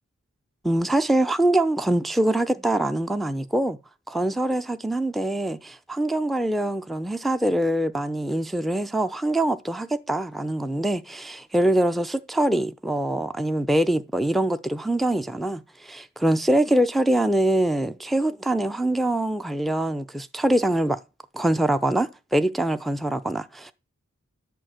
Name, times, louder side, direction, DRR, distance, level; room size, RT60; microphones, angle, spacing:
voice 1, 0.6-3.8 4.1-21.0 21.3-23.7, right 1 dB, ahead, 0.5 m, -24 dB
11.0 x 4.6 x 7.7 m
wide cardioid pair, 40°, 30 cm